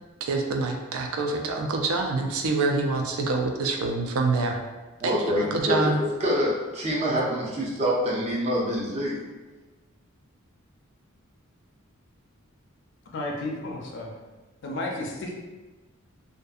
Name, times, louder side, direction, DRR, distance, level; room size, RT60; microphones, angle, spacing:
voice 1, 0.2-4.6 5.0-6.0, right 3 dB, 90° right, 3 dB, 0.4 m, -26 dB
voice 2, 5.0-9.2, equal, 30° right, -4 dB, 0.6 m, -26 dB
voice 3, 13.1-14.1 14.6-15.3, left 2 dB, 60° left, -1 dB, 0.4 m, -32 dB
2.6 x 2.4 x 2.3 m, 1.2 s
head